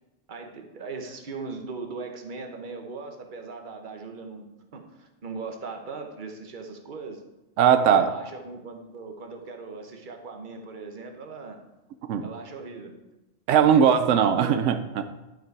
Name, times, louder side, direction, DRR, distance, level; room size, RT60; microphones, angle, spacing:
voice 1, 0.3-4.5 4.7-7.2 7.9-11.6 12.2-12.9 13.5-13.9 14.3-14.7, right 4 dB, 45° right, 4 dB, 1.1 m, -39 dB
voice 2, 7.6-8.1 12.1-12.2 13.5-15.0, right 8 dB, 85° right, 9 dB, 0.9 m, -19 dB
12.0 x 5.2 x 4.6 m, 1.0 s
omnidirectional pair, 1.2 m